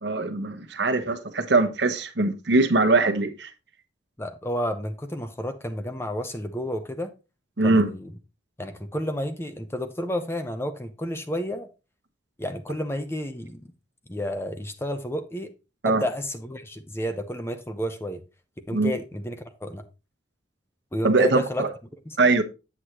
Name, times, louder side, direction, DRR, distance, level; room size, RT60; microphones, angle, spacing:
voice 1, 0.0-3.5 7.6-7.9 15.8-16.0 18.7-18.9 21.0-21.7 22.2-22.4, right 3 dB, 60° right, 1.0 m, -22 dB
voice 2, 4.2-7.1 7.6-8.1 8.6-11.7 12.4-13.7 14.1-15.5 15.8-18.2 18.7-19.8 20.9-21.7 22.1-22.2, left 1 dB, 15° left, 0.7 m, -31 dB
8.0 x 7.9 x 3.0 m
head